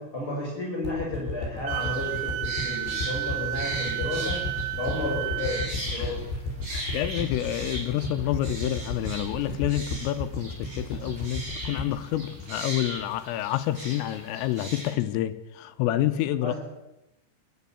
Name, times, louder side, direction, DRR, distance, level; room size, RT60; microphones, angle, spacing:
voice 1, 0.0-4.4 4.8-6.2 16.4-16.6, left 2 dB, 25° left, 6.3 m, -32 dB
sound 1, 0.8-13.2 13.6-13.7, left 2 dB, 55° left, 8.4 m, -33 dB
sound 2, 1.7-14.9, right 1 dB, 25° right, 6.3 m, -39 dB
Wind instrument woodwind instrument, 1.7-5.7, right 17 dB, 80° right, 3.4 m, -32 dB
voice 2, 6.7-16.5, left 13 dB, 80° left, 3.6 m, -28 dB
27.5 x 12.0 x 8.6 m
omnidirectional pair, 5.9 m